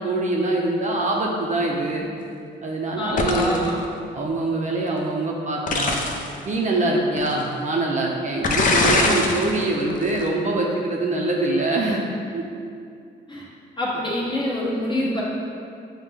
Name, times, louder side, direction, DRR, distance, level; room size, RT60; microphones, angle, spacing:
voice 1, 0.0-2.1 2.6-3.7 4.1-6.0 6.4-12.0 12.3-12.5 15.0-15.1, right 2 dB, 40° right, -1 dB, 0.5 m, -24 dB
voice 2, 3.0-3.8 13.3-13.5 13.8-15.2, left 1 dB, 25° left, -5 dB, 1.0 m, -26 dB
sound 1, 3.2-3.7 5.7-6.3 7.2-7.3 8.4-9.5 9.9-10.2, left 3 dB, 40° left, 0.5 m, -21 dB
6.2 x 2.1 x 3.5 m, 2.4 s
cardioid pair, 90°, 20 cm